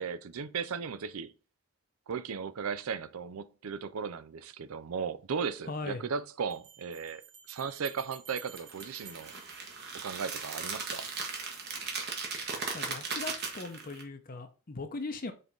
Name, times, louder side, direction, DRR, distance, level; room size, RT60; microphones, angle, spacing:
voice 1, 0.0-1.3 2.1-7.2 7.5-9.3 9.9-11.1, right 6 dB, 75° right, 0.5 m, -36 dB
sound 1, 4.9-5.0 6.5-10.5, right 6 dB, 30° right, 0.9 m, -52 dB
voice 2, 5.7-6.0 12.7-15.3, left 3 dB, 40° left, 0.7 m, -39 dB
sound 2, 8.6-14.0, right 4 dB, 45° right, 1.3 m, -37 dB
5.5 x 3.9 x 4.5 m
head